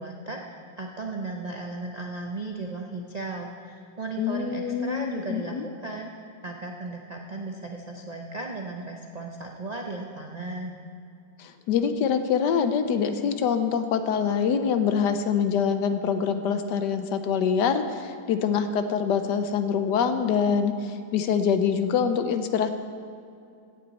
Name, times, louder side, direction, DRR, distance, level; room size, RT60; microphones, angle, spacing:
voice 1, 0.0-6.1 6.4-10.8, right 2 dB, 85° right, 1 dB, 0.3 m, -36 dB
voice 2, 4.2-5.6 11.4-22.7, left 7 dB, 70° left, 9 dB, 1.2 m, -25 dB
16.5 x 8.7 x 4.1 m, 2.4 s
omnidirectional pair, 2.0 m